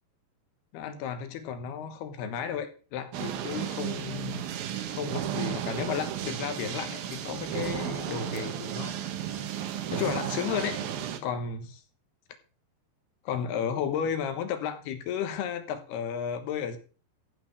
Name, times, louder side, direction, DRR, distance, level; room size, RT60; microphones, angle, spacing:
voice 1, 0.7-4.4 4.9-9.0 9.9-10.8 11.2-11.8 13.3-16.8, left 8 dB, 70° left, 9 dB, 3.0 m, -33 dB
sound 1, 3.1-11.2, right 10 dB, 70° right, 2.5 m, -34 dB
14.5 x 5.0 x 6.6 m, 0.37 s
omnidirectional pair, 5.1 m